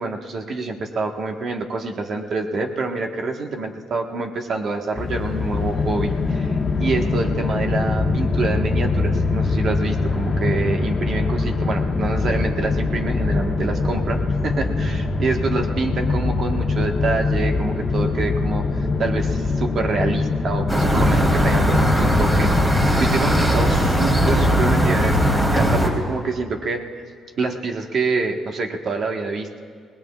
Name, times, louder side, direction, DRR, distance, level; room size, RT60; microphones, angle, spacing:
voice 1, 0.0-26.9 27.4-29.6, right 3 dB, 60° right, 3 dB, 1.4 m, -26 dB
sound 1, 5.0-22.9, left 3 dB, 35° left, 1.1 m, -23 dB
sound 2, 20.7-25.9, equal, 25° right, 3.5 m, -18 dB
30.0 x 18.5 x 2.4 m, 2.2 s
cardioid pair, 90°, 0 cm